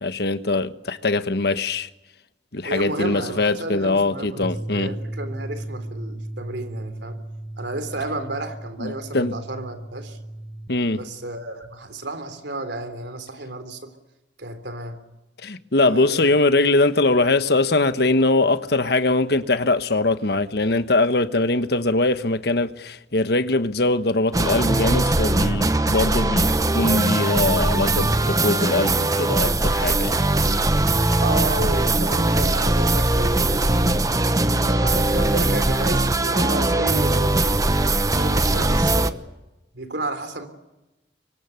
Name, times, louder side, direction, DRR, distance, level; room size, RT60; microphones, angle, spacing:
voice 1, 0.0-1.9 2.5-4.9 8.8-9.4 10.7-11.0 15.4-30.2, left 2 dB, 65° left, 1.3 m, -22 dB
voice 2, 2.6-7.2 7.6-10.2 10.9-14.0 14.4-15.0 15.8-16.3 27.2-27.4 31.2-34.1 34.7-37.8 38.1-39.2 39.7-40.5, right 2 dB, 75° right, 3.4 m, -32 dB
sound 1, 4.4-10.7, right 1 dB, ahead, 1.0 m, -35 dB
sound 2, 24.3-39.1, right 2 dB, 20° right, 1.0 m, -20 dB
24.5 x 23.5 x 8.1 m
head